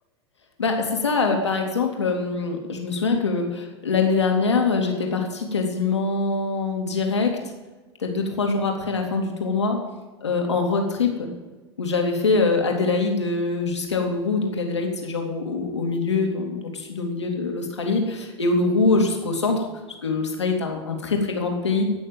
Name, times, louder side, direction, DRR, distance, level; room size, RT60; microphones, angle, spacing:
voice 1, 0.6-7.4 8.0-9.8 10.2-11.3 11.8-19.6 20.0-21.8, left 4 dB, 85° left, 2 dB, 2.7 m, -23 dB
16.5 x 6.6 x 9.1 m, 1.2 s
hypercardioid pair, 90°, 14 cm